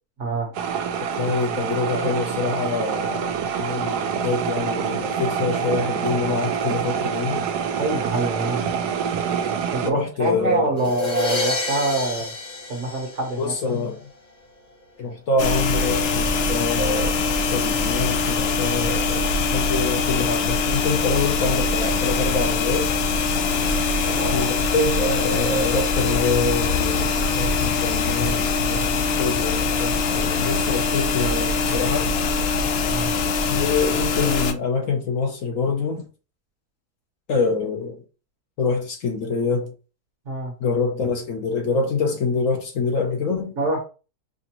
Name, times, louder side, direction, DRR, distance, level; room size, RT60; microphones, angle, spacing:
sound 1, 0.5-9.9, right 7 dB, 80° right, 1.2 m, -26 dB
voice 1, 1.0-7.4 9.8-10.9 13.4-14.0 15.0-22.9 24.3-32.2 33.5-36.1 37.3-38.0 38.6-39.7 40.6-43.5, left 4 dB, 60° left, 1.0 m, -25 dB
voice 2, 7.7-8.7 9.7-12.3 12.7-13.7 23.7-24.5 32.9-33.1 40.3-40.5 43.6-43.8, right 2 dB, 55° right, 1.2 m, -26 dB
sound 2, 10.8-13.7, left 2 dB, 40° left, 0.7 m, -28 dB
sound 3, 15.4-34.5, left 4 dB, 85° left, 0.5 m, -23 dB
5.0 x 2.5 x 2.9 m
omnidirectional pair, 1.7 m